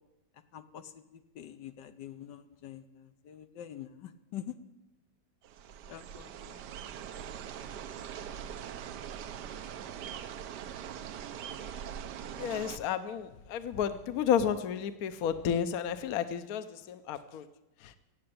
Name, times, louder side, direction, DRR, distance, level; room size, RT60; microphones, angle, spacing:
voice 1, 0.5-4.6 5.9-6.7, left 10 dB, 75° left, 9 dB, 1.4 m, -46 dB
sound 1, 5.4-12.8, right 9 dB, 70° right, 1.3 m, -42 dB
voice 2, 12.3-17.4 17.8-17.9, left 8 dB, 60° left, 11 dB, 1.1 m, -32 dB
16.5 x 7.8 x 8.7 m, 0.98 s
omnidirectional pair, 1.9 m